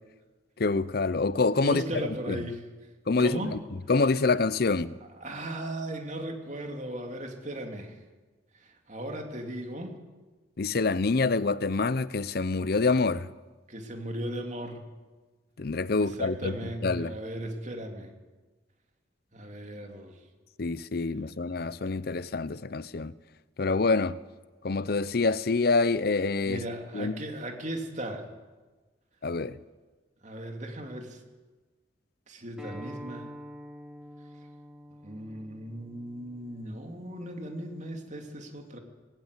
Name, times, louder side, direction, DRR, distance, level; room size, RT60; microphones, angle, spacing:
voice 1, 0.6-2.4 3.1-3.6 3.9-4.9 10.6-13.3 15.6-17.1 20.6-23.1 23.6-24.2 24.6-26.6 26.9-27.1 29.2-29.6, left 3 dB, 55° left, 0.6 m, -26 dB
voice 2, 1.6-2.7 3.2-3.6 5.2-8.0 8.5-10.0 13.7-14.8 16.0-18.1 19.3-20.2 26.5-28.2 30.2-31.2 32.3-33.4 35.0-38.8, right 1 dB, 40° right, 2.8 m, -37 dB
Acoustic guitar, 32.6-37.8, equal, 5° right, 3.3 m, -47 dB
20.0 x 18.0 x 8.2 m
head